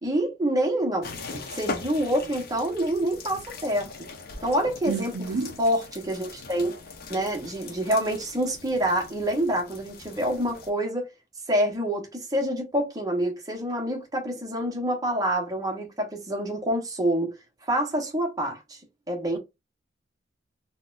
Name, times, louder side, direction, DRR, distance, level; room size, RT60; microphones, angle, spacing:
voice 1, 0.0-3.9 4.4-5.1 5.6-6.7 7.1-11.1 11.5-17.3 17.7-18.8 19.1-19.4, right 1 dB, 20° right, 1.0 m, -27 dB
sound 1, 1.0-10.7, left 4 dB, 50° left, 0.7 m, -40 dB
voice 2, 4.9-5.6, right 4 dB, 90° right, 0.6 m, -30 dB
4.0 x 2.3 x 2.5 m
head